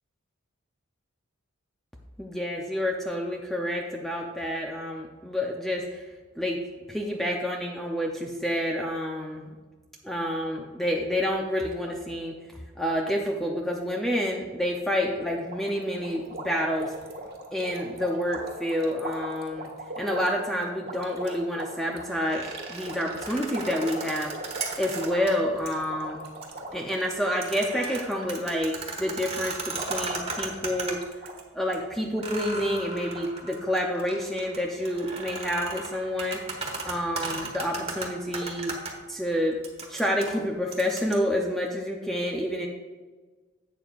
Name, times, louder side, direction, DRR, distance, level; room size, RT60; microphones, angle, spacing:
voice 1, 2.2-6.1 6.4-6.6 6.9-9.5 10.0-12.4 12.8-16.9 17.5-19.7 20.0-24.3 24.8-26.2 26.7-31.0 31.5-38.7 39.1-39.6 39.9-42.7, equal, ahead, -1 dB, 0.7 m, -29 dB
sound 1, 15.5-28.2 28.5-28.9 29.5-31.4 31.7-31.8 32.1-32.2 32.8-32.9 33.1-33.3, right 1 dB, 50° right, 1.7 m, -39 dB
sound 2, 22.1-25.3 25.7-25.8 26.3-26.6 26.9-31.4 31.7-31.8 32.2-38.9 39.6-41.2, right 3 dB, 30° right, 1.4 m, -36 dB
11.5 x 8.1 x 2.5 m, 1.4 s
head